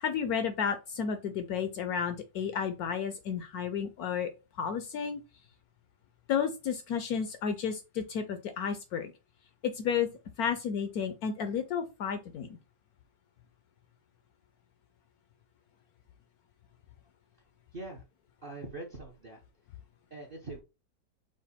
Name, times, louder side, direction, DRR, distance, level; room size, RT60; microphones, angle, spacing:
voice 1, 0.0-4.3 4.6-5.2 6.3-9.1 9.6-10.1 10.4-12.6, left 7 dB, 70° left, 0.9 m, -32 dB
voice 2, 17.7-18.0 18.4-19.4 20.1-20.6, right 2 dB, 50° right, 0.6 m, -42 dB
5.0 x 2.2 x 4.1 m
omnidirectional pair, 1.9 m